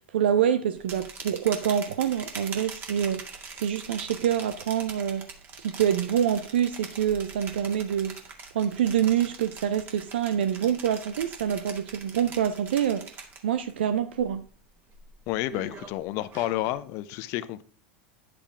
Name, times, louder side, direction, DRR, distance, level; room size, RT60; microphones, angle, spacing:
voice 1, 0.1-3.2 3.6-5.3 5.6-8.2 8.5-13.0 13.4-14.4, right 9 dB, 75° right, 0.5 m, -26 dB
sound 1, 0.8-13.7 14.1-14.5 14.9-16.8, right 4 dB, 35° right, 2.0 m, -43 dB
voice 2, 15.3-17.6, left 15 dB, 55° left, 0.7 m, -30 dB
9.8 x 7.7 x 3.6 m
hypercardioid pair, 90°, 6 cm